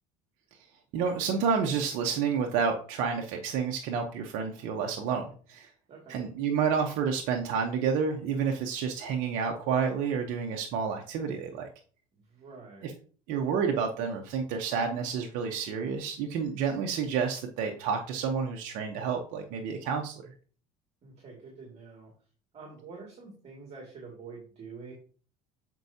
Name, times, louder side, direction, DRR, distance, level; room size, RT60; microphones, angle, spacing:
voice 1, 0.9-5.7 6.1-11.7 12.8-12.9 13.3-20.2, right 6 dB, 65° right, 2 dB, 0.9 m, -29 dB
voice 2, 12.2-12.9 21.0-22.1 22.5-24.9, right 4 dB, 45° right, -2 dB, 2.3 m, -46 dB
7.7 x 4.5 x 2.8 m, 0.43 s
supercardioid pair, 90°, 15 cm